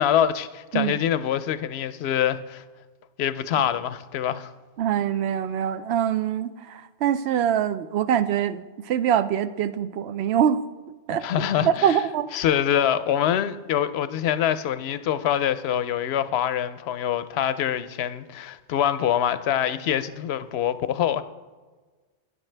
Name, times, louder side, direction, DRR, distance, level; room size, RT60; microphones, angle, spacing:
voice 1, 0.0-2.6 3.2-4.5 11.2-12.0 12.3-21.2, left 10 dB, 70° left, 0.8 m, -25 dB
voice 2, 4.8-10.6 11.1-11.2 11.6-12.3, right 9 dB, 75° right, 0.8 m, -24 dB
11.5 x 9.6 x 3.3 m
omnidirectional pair, 1.1 m